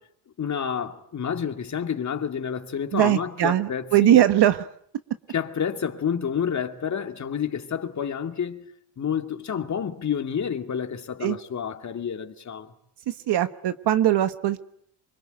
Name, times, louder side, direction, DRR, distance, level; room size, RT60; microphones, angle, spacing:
voice 1, 0.4-4.2 5.3-8.7 9.0-12.7, left 7 dB, 35° left, 2.5 m, -29 dB
voice 2, 2.9-4.7 11.2-11.4 13.1-14.6, right 12 dB, 60° right, 1.3 m, -21 dB
26.0 x 24.0 x 9.2 m
cardioid pair, 125°, 47 cm